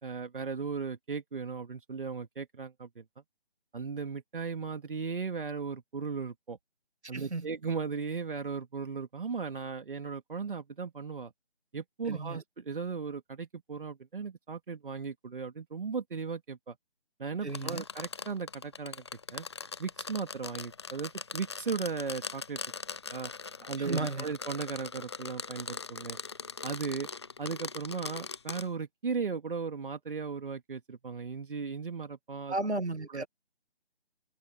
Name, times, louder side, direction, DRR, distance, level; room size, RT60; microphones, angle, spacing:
voice 1, 0.0-3.0 3.7-6.6 7.1-11.3 11.7-16.8 17.2-19.0 19.3-19.5 19.8-22.6 23.1-23.3 23.7-26.2 26.6-27.1 27.4-32.6 33.1-33.2, right 5 dB, 55° right, 3.0 m, -36 dB
voice 2, 7.1-7.5 12.1-12.4 17.4-17.8 23.8-24.3 32.5-33.3, right 2 dB, 85° right, 2.1 m, -34 dB
sound 1, 17.5-28.7, left 5 dB, 25° left, 0.7 m, -41 dB
figure-of-eight pair, 150°, 33 cm